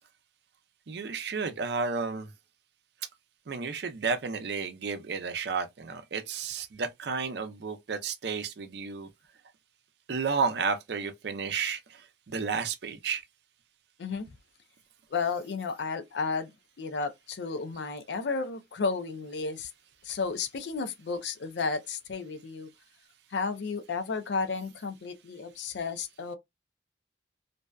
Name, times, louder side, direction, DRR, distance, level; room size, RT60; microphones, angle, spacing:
voice 1, 0.9-2.3 3.5-9.1 10.1-13.2, right 5 dB, 70° right, 0.5 m, -32 dB
voice 2, 14.0-14.3 15.1-16.5 16.8-19.7 20.0-22.7 23.3-26.4, left 4 dB, 75° left, 0.4 m, -32 dB
2.6 x 2.2 x 2.3 m
head